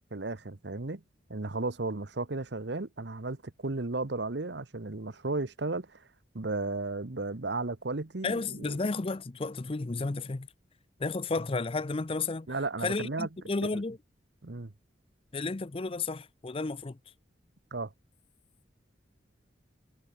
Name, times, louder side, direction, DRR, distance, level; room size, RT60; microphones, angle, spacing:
voice 1, 0.1-1.0 1.3-6.0 6.3-8.8 12.5-13.3 13.7-13.8 14.4-14.7 17.7-17.9, right 3 dB, 60° right, 1.1 m, -34 dB
voice 2, 8.2-10.5 11.0-12.5 12.8-14.0 15.3-17.0, left 3 dB, 30° left, 0.5 m, -32 dB
head